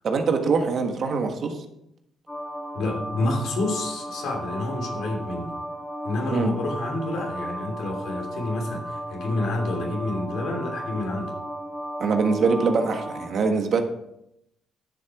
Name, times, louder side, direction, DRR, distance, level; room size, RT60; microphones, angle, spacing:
voice 1, 0.0-1.6 6.3-6.5 12.0-13.8, right 4 dB, 60° right, 5 dB, 1.5 m, -23 dB
sound 1, 2.3-13.3, equal, 15° left, 1.9 m, -35 dB
voice 2, 2.7-5.5 6.0-11.3, left 2 dB, 75° left, 1 dB, 3.0 m, -28 dB
11.0 x 6.9 x 4.9 m, 0.80 s
cardioid pair, 90°, 0 cm